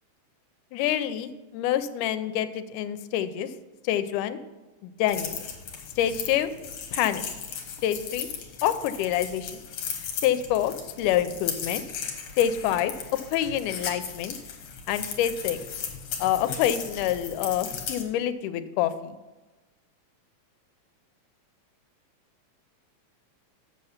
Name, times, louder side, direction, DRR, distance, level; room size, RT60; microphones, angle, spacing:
voice 1, 0.7-3.5 3.8-4.4 4.8-5.4 6.0-6.5 6.9-7.2 7.8-8.3 8.6-9.6 10.2-11.8 12.4-12.9 13.3-14.3 14.9-15.6 16.2-19.2, left 11 dB, 90° left, 11 dB, 2.1 m, -26 dB
sound 1, 5.1-18.0, left 7 dB, 65° left, 2.2 m, -36 dB
7.8 x 6.6 x 5.7 m, 1.1 s
omnidirectional pair, 3.6 m